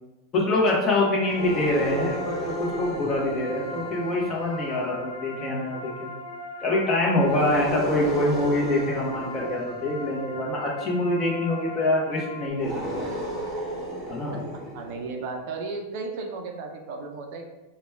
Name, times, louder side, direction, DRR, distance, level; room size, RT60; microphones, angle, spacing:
voice 1, 0.3-6.1 6.6-13.1 14.1-14.4, left 1 dB, 20° left, -3 dB, 1.0 m, -25 dB
sound 1, 1.0-12.5, left 3 dB, 80° left, 0.7 m, -39 dB
sound 2, 1.3-4.8 7.2-10.3 12.5-15.3, right 1 dB, 20° right, 0.9 m, -33 dB
voice 2, 14.3-17.5, right 4 dB, 50° right, 3 dB, 0.5 m, -35 dB
4.0 x 2.3 x 4.4 m, 1.0 s
supercardioid pair, 160°, 0 cm